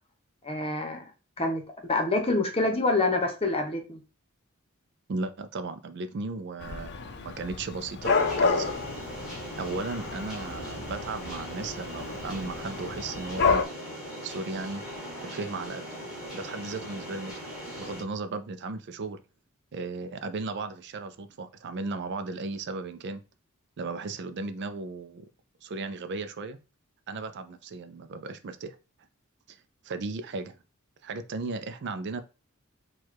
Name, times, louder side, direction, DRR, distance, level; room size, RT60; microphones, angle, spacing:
voice 1, 0.4-1.0 1.4-1.6 1.9-4.0, left 2 dB, 30° left, 1.0 m, -26 dB
voice 2, 5.1-8.7 9.6-13.6 14.2-14.8 15.2-15.9 16.3-17.5 17.8-19.2 19.7-23.2 23.8-25.2 25.6-26.6 27.1-28.8 29.5-29.6 29.8-30.5 31.0-32.2, right 3 dB, 55° right, 0.4 m, -35 dB
Dog / Cat, 6.6-13.6, left 4 dB, 55° left, 0.5 m, -30 dB
sound 1, 8.0-18.0, equal, ahead, 1.9 m, -40 dB
4.6 x 2.3 x 4.5 m
head